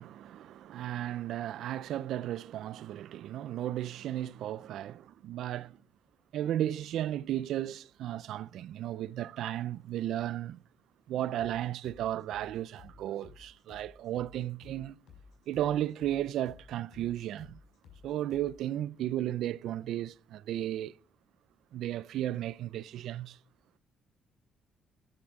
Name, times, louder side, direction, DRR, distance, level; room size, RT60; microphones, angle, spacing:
voice 1, 0.0-5.8 6.3-10.6 11.1-15.0 15.5-17.6 18.0-20.9 21.7-23.4, right 12 dB, 80° right, 0.5 m, -34 dB
sound 1, 11.4-18.6, left 6 dB, 80° left, 5.4 m, -55 dB
14.0 x 11.0 x 4.9 m
cardioid pair, 125°, 0 cm